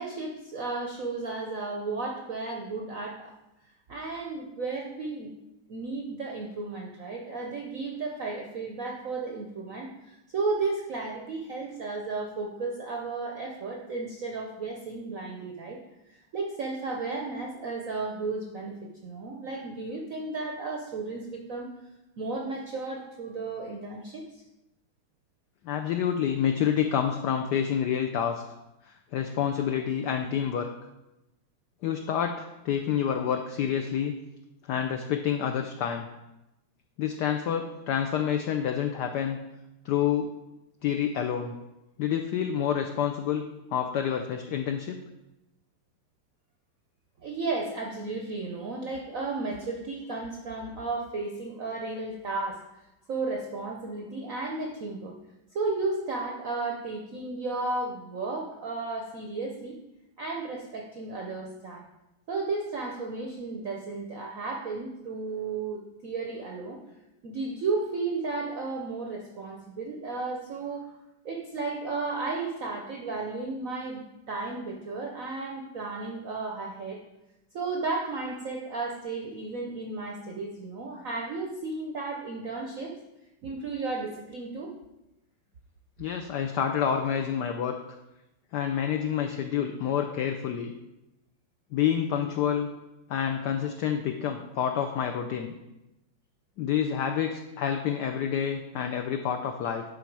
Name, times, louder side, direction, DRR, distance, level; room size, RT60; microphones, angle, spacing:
voice 1, 0.0-3.3 3.9-5.3 5.7-15.8 16.1-21.7 22.2-24.4 47.2-52.6 53.1-55.2 55.5-59.8 60.2-61.8 62.3-66.8 67.2-70.9 71.2-77.0 77.5-82.9 83.4-84.7, right 3 dB, 70° right, 0 dB, 0.7 m, -34 dB
voice 2, 25.6-28.4 28.8-30.7 31.8-34.1 34.7-36.1 37.0-39.4 39.8-40.3 40.8-41.5 42.0-43.4 43.7-45.0 86.0-87.8 88.5-90.7 91.7-92.7 93.1-95.5 96.6-99.8, left 8 dB, 90° left, 5 dB, 0.9 m, -28 dB
10.0 x 3.9 x 4.6 m, 0.96 s
omnidirectional pair, 2.4 m